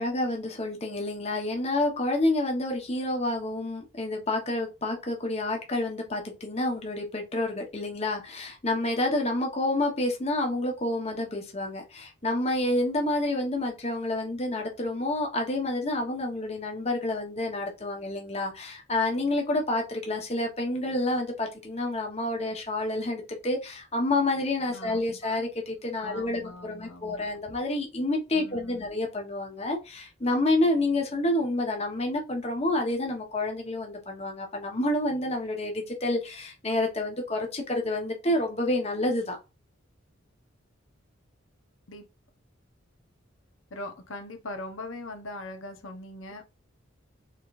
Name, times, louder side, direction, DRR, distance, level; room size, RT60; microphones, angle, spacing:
voice 1, 0.0-39.4, left 2 dB, 30° left, 1.0 m, -29 dB
voice 2, 24.7-25.4 26.0-27.3 28.3-28.9 41.9-42.1 43.7-46.4, left 2 dB, 75° left, 1.0 m, -41 dB
5.1 x 3.9 x 2.5 m
head